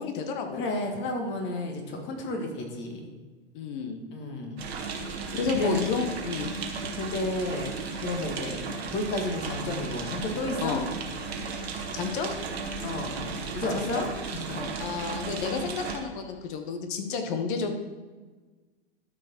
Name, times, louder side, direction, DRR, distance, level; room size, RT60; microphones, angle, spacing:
voice 1, 0.0-0.6 3.5-4.0 5.3-6.5 10.6-10.8 11.9-12.3 13.7-14.1 14.5-17.7, left 5 dB, 50° left, 6 dB, 1.2 m, -31 dB
voice 2, 0.5-3.1 4.1-4.6 5.4-5.8 6.9-7.7 8.0-8.6 8.9-10.8 12.8-13.2 13.5-14.1 14.3-14.6, left 2 dB, 35° left, 3 dB, 1.7 m, -32 dB
sound 1, 4.6-16.0, right 4 dB, 70° right, 1.5 m, -35 dB
12.5 x 5.0 x 4.5 m, 1.3 s
figure-of-eight pair, 100°, 32 cm